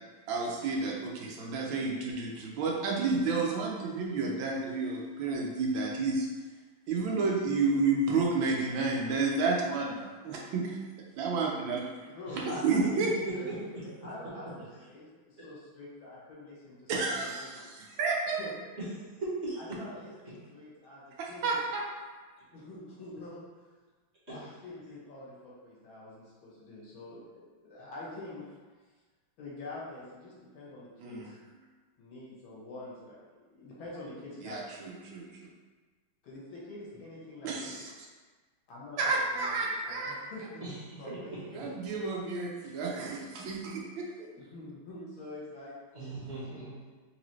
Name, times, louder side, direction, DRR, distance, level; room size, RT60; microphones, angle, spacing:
voice 1, 0.3-6.3 6.9-10.8 11.2-12.1 12.3-13.1 13.4-13.5 16.9-18.4 21.2-21.9 31.0-31.3 34.4-35.3 37.4-37.9 39.0-40.2 41.5-44.3, right 4 dB, 80° right, -1 dB, 1.4 m, -31 dB
voice 2, 12.1-12.8 13.3-17.6 18.4-18.5 19.6-21.6 22.5-23.4 24.3-28.5 29.4-31.3 32.0-34.6 36.2-37.8 38.7-40.6 41.0-42.0 44.3-45.8 46.1-46.2, left 2 dB, 80° left, -6 dB, 2.0 m, -46 dB
voice 3, 19.2-19.6 24.3-24.4 40.6-41.7 45.9-46.7, right 2 dB, 40° right, -9 dB, 1.2 m, -38 dB
4.0 x 3.2 x 3.0 m, 1.3 s
omnidirectional pair, 2.2 m